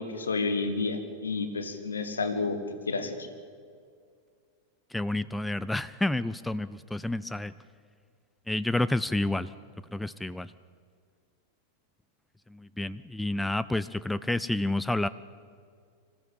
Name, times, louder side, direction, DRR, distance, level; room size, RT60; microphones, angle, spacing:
voice 1, 0.0-2.6 2.9-3.3, left 3 dB, 70° left, 8 dB, 2.1 m, -30 dB
voice 2, 4.9-7.5 8.5-9.5 9.9-10.5 12.5-15.1, left 2 dB, 5° left, 16 dB, 0.5 m, -29 dB
26.0 x 14.5 x 8.7 m, 2.2 s
figure-of-eight pair, 90°, 0 cm